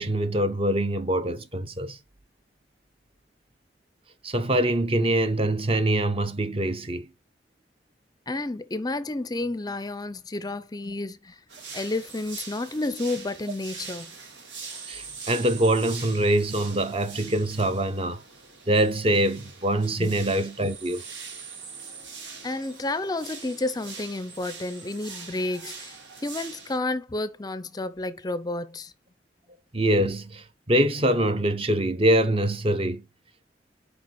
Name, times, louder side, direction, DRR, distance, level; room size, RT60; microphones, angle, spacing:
voice 1, 0.0-2.0 4.2-7.1 14.9-18.2 18.7-21.0 29.7-33.0, right 1 dB, 30° right, 0.8 m, -24 dB
voice 2, 8.3-11.4 11.7-14.1 19.9-20.1 22.4-26.0 26.2-28.9, left 2 dB, 20° left, 0.5 m, -31 dB
sound 1, 11.5-26.8, right 5 dB, 85° right, 2.3 m, -42 dB
6.6 x 5.0 x 4.5 m
head